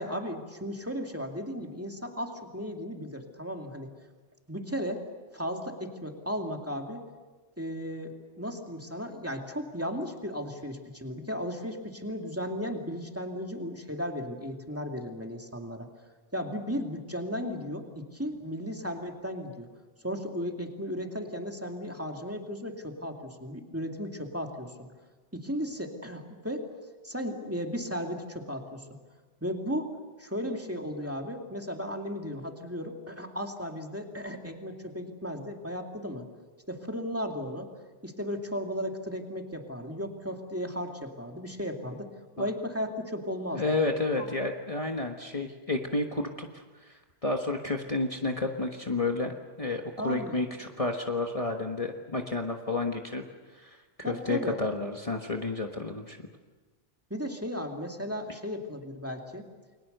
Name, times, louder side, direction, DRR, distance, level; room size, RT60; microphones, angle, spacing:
voice 1, 0.0-3.9 4.5-5.0 5.3-7.0 7.6-15.9 16.3-19.7 20.0-24.9 25.3-26.7 27.0-28.8 29.4-29.9 30.2-36.2 36.7-37.7 38.0-42.1 42.4-43.6 44.2-44.3 50.0-50.4 54.0-54.6 57.1-59.4, equal, 10° right, 2 dB, 2.4 m, -35 dB
voice 2, 43.5-53.2 53.5-56.2, left 2 dB, 30° left, 2 dB, 1.5 m, -31 dB
30.0 x 22.5 x 6.8 m, 1.3 s
omnidirectional pair, 1.2 m